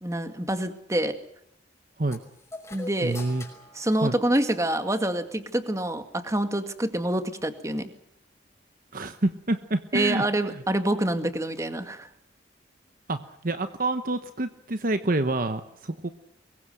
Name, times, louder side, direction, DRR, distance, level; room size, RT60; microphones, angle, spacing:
voice 1, 0.0-1.2 2.7-3.2 3.7-7.9 9.9-12.1, right 1 dB, 15° right, 8 dB, 2.1 m, -26 dB
sound 1, 2.1-4.8, left 1 dB, 15° left, 5.6 m, -44 dB
voice 2, 3.0-3.4 4.0-4.1 8.9-10.2 10.5-10.6 13.1-16.1, right 2 dB, 50° right, 9 dB, 1.1 m, -27 dB
24.0 x 22.0 x 7.8 m, 0.71 s
head